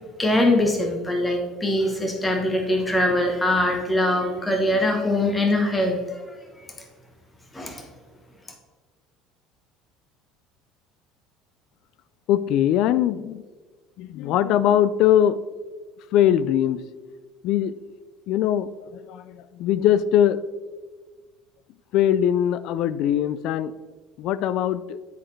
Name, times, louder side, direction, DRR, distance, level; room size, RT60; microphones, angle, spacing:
voice 1, 0.2-6.2 7.5-7.9, left 1 dB, 10° left, 2 dB, 1.0 m, -22 dB
voice 2, 12.3-13.4 14.0-15.4 16.1-16.8 17.4-17.8 18.3-20.4 21.9-23.7 24.2-25.0, left 10 dB, 60° left, 16 dB, 0.3 m, -21 dB
9.9 x 4.0 x 3.2 m, 1.3 s
cardioid pair, 135°, 0 cm